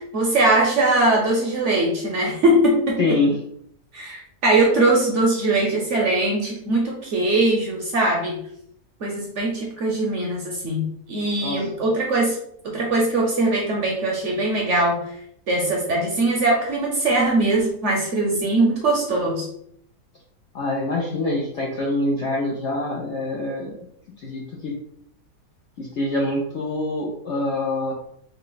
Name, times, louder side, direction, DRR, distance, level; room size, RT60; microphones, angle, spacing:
voice 1, 0.0-3.0 3.9-8.4 9.0-12.4 12.6-15.1 15.5-19.5, right 2 dB, 60° right, -1 dB, 0.8 m, -21 dB
voice 2, 3.0-3.3 11.4-11.7 20.5-23.7 24.2-24.7 25.8-27.9, left 2 dB, 70° left, -2 dB, 0.7 m, -25 dB
3.3 x 2.4 x 3.8 m, 0.70 s
omnidirectional pair, 1.8 m